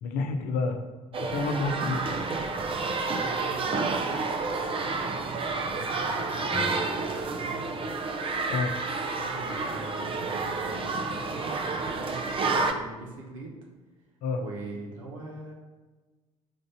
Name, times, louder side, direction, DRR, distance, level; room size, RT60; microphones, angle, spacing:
voice 1, 0.0-0.8 1.2-2.2 8.5-8.7 14.2-14.4, left 3 dB, 55° left, 5 dB, 0.7 m, -29 dB
sound 1, 1.1-12.7, right 3 dB, 30° right, 0.6 m, -30 dB
voice 2, 3.1-7.9 9.2-13.6 14.4-15.5, right 2 dB, 70° right, -1 dB, 0.9 m, -42 dB
Acoustic guitar / Strum, 6.5-10.8, left 1 dB, 30° left, 1.4 m, -43 dB
5.1 x 3.9 x 5.5 m, 1.3 s
figure-of-eight pair, 55°, 17 cm